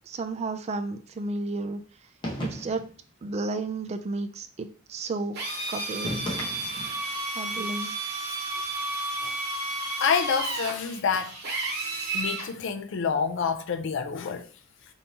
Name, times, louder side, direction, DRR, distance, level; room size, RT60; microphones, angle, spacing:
voice 1, 0.1-1.8 2.4-2.8 3.2-5.4 5.7-6.3 7.3-7.9, right 3 dB, 30° right, 0.3 m, -32 dB
sound 1, 2.2-3.0 6.0-7.1, equal, 25° left, 0.9 m, -34 dB
Drill, 5.3-12.5, right 2 dB, 55° right, 1.0 m, -32 dB
voice 2, 10.0-11.3 12.1-14.5, left 6 dB, 65° left, 0.4 m, -27 dB
3.4 x 2.7 x 2.8 m
head